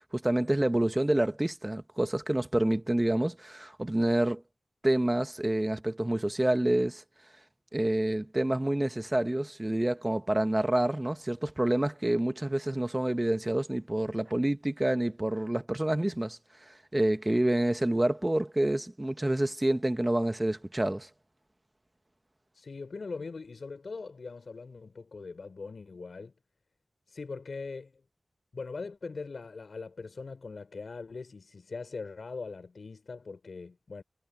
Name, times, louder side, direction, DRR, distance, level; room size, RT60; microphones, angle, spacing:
voice 1, 0.1-4.4 4.8-7.0 7.7-16.4 16.9-21.1, right 1 dB, 20° right, 1.1 m, -28 dB
voice 2, 22.5-26.3 27.1-28.0 28.5-34.0, left 4 dB, 75° left, 5.9 m, -41 dB
wide cardioid pair, 90°, 0 cm